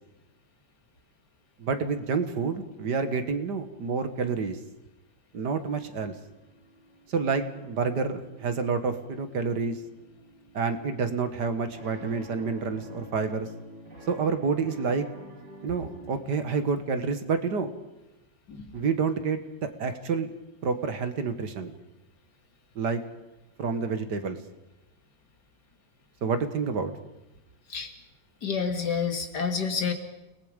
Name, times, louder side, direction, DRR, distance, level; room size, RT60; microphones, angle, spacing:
voice 1, 1.6-4.6 5.3-6.2 7.1-9.8 10.5-13.5 14.1-15.1 15.6-17.7 18.7-20.3 20.6-21.7 22.8-23.0 23.6-24.4 26.2-26.9, right 5 dB, 65° right, 9 dB, 2.0 m, -28 dB
sound 1, 5.8-16.6, equal, 80° right, 6.4 m, -49 dB
voice 2, 28.4-29.9, left 6 dB, 60° left, 6 dB, 2.6 m, -28 dB
29.5 x 19.5 x 5.1 m, 0.99 s
omnidirectional pair, 2.0 m